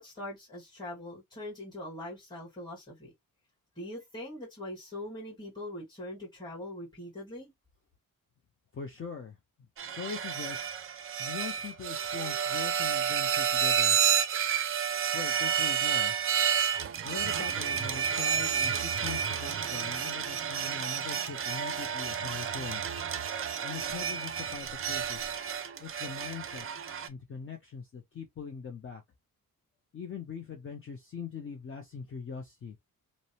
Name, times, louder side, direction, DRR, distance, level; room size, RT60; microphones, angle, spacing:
voice 1, 0.0-3.1 3.7-7.5, left 1 dB, 10° left, 1.5 m, -42 dB
voice 2, 8.7-9.4 9.8-10.7 11.2-14.0 15.1-16.2 17.0-22.8 23.6-25.3 25.8-26.7 27.1-29.0 29.9-32.8, left 6 dB, 35° left, 0.6 m, -42 dB
sound 1, 9.8-27.1, right 8 dB, 40° right, 0.4 m, -30 dB
2.6 x 2.1 x 2.8 m
cardioid pair, 115°, 35 cm